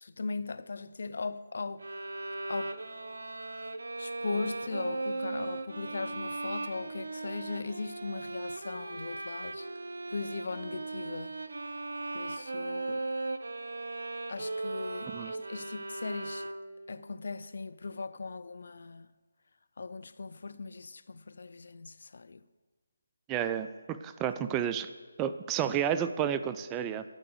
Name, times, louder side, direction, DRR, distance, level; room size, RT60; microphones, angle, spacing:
voice 1, 0.0-1.9 2.5-2.8 4.0-9.7 10.1-11.4 12.1-13.0 14.3-16.5 16.9-19.1 19.8-22.4, left 4 dB, 65° left, 0.4 m, -39 dB
sound 1, 1.8-16.9, right 2 dB, 70° right, 0.7 m, -38 dB
voice 2, 23.3-24.9 25.2-27.0, right 9 dB, 15° right, 0.3 m, -31 dB
11.5 x 4.9 x 7.8 m
figure-of-eight pair, 155°, 0 cm